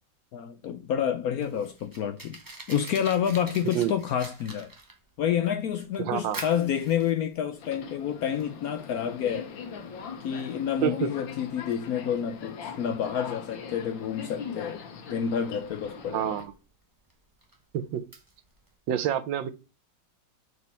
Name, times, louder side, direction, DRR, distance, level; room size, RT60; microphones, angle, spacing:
voice 1, 0.3-2.4 2.7-4.7 5.2-9.5 10.2-14.8 15.1-16.3, left 9 dB, 70° left, 0.9 m, -29 dB
Fire, 1.2-18.7, right 2 dB, 15° right, 0.7 m, -48 dB
voice 2, 6.0-6.4 10.8-11.1 16.1-16.5 17.7-18.0 18.9-19.5, right 10 dB, 85° right, 1.5 m, -27 dB
Subway metro underground, 7.5-16.4, left 6 dB, 90° left, 1.7 m, -41 dB
4.7 x 4.2 x 5.4 m
omnidirectional pair, 2.0 m